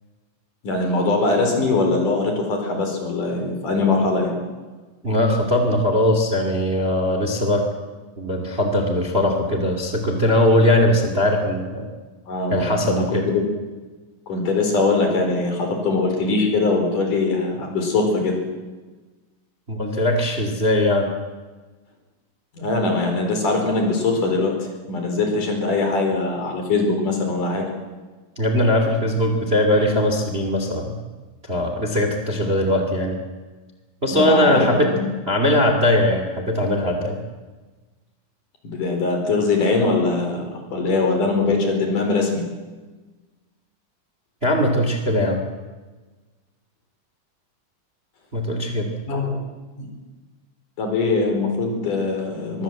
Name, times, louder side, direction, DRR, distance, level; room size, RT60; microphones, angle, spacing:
voice 1, 0.6-4.3 12.3-13.4 14.3-18.4 22.5-27.7 34.1-35.1 38.6-42.4 49.1-49.4 49.8-49.9 50.8-52.6, left 3 dB, 60° left, 3 dB, 6.0 m, -22 dB
voice 2, 5.0-7.6 8.2-11.9 12.5-13.3 19.7-21.1 28.4-31.0 31.5-33.2 34.0-34.9 35.3-37.2 44.4-45.4 48.3-48.9, left 1 dB, 20° right, 5 dB, 2.3 m, -20 dB
24.0 x 22.5 x 7.7 m, 1.3 s
omnidirectional pair, 4.1 m